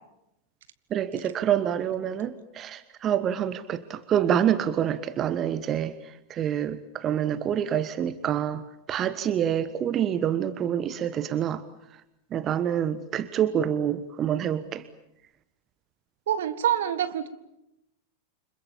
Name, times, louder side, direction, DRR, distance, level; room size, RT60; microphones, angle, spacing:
voice 1, 0.9-8.6 8.9-11.6 12.3-14.8, right 9 dB, 30° right, 14 dB, 1.2 m, -27 dB
voice 2, 16.3-17.3, right 10 dB, 60° right, 12 dB, 1.8 m, -26 dB
29.5 x 26.5 x 7.3 m, 0.87 s
figure-of-eight pair, 90°, 0 cm